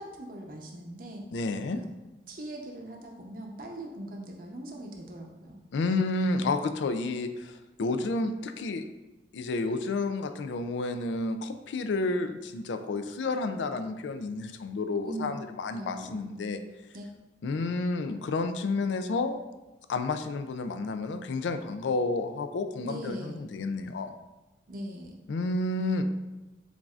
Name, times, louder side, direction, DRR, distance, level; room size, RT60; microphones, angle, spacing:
voice 1, 0.0-1.2 1.7-1.9 2.3-5.6 15.0-15.4 15.7-16.3 16.9-17.1 22.8-23.5 24.7-25.1, right 1 dB, 50° right, 1 dB, 0.7 m, -40 dB
voice 2, 1.3-1.8 5.7-8.8 9.3-16.6 17.4-19.4 19.9-24.1 25.3-26.0, left 3 dB, 80° left, 8 dB, 0.4 m, -30 dB
7.1 x 2.6 x 2.4 m, 1.0 s
head